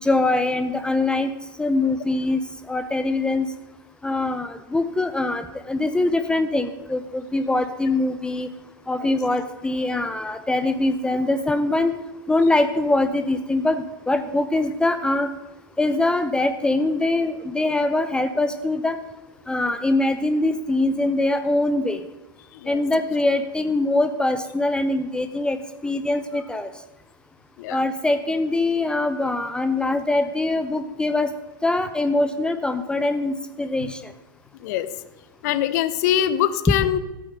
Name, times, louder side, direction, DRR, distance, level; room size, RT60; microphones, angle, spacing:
voice 1, 0.0-1.3 1.6-3.5 4.0-8.5 8.9-11.9 12.3-15.3 15.8-19.0 19.5-22.0 22.7-25.6 25.8-26.7 27.7-31.3 31.6-34.1, left 2 dB, 5° left, 10 dB, 0.7 m, -23 dB
voice 2, 35.4-37.0, left 11 dB, 50° left, 13 dB, 0.9 m, -23 dB
14.5 x 8.5 x 5.2 m, 1.0 s
figure-of-eight pair, 95°, 12 cm